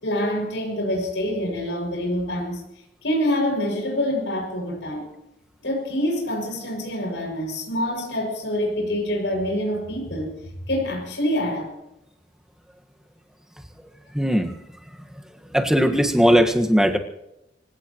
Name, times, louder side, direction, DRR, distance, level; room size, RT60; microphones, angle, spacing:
voice 1, 0.0-2.6 3.0-5.1 5.6-10.4 10.7-11.7, left 1 dB, 80° left, 1 dB, 6.5 m, -26 dB
voice 2, 14.1-14.5 15.5-17.0, equal, 5° right, 4 dB, 1.6 m, -18 dB
25.5 x 17.5 x 3.1 m, 0.87 s
head